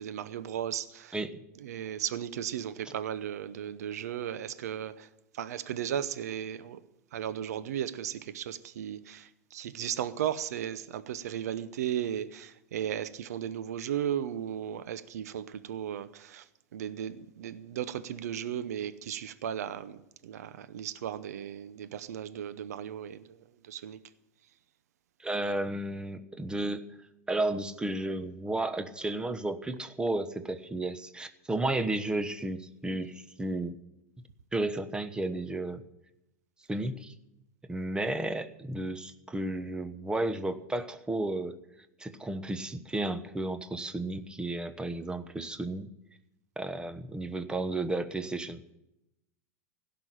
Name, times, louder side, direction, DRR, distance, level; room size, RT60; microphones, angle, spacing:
voice 1, 0.0-1.1 1.6-5.1 5.4-6.8 7.1-16.4 16.7-20.0 20.2-23.3 23.7-24.0, right 10 dB, 75° right, 0.8 m, -35 dB
voice 2, 25.2-26.8 27.3-33.7 34.5-35.8 36.7-37.1 37.7-41.6 42.0-45.9 46.6-48.7, right 2 dB, 10° right, 1.1 m, -33 dB
16.0 x 6.0 x 10.0 m
hypercardioid pair, 100°, 9 cm